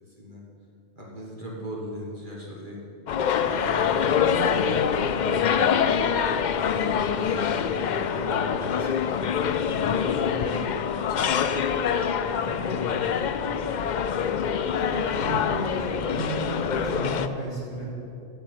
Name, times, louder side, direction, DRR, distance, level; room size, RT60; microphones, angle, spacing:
voice 1, 1.0-2.8 3.4-6.1 6.6-9.3 9.8-13.7, left 1 dB, 40° right, -3 dB, 1.9 m, -38 dB
sound 1, 3.1-17.3, left 7 dB, 85° left, 0.4 m, -25 dB
voice 2, 14.8-17.9, right 1 dB, 55° left, -5 dB, 3.8 m, -33 dB
9.2 x 7.8 x 7.9 m, 2.6 s
omnidirectional pair, 1.3 m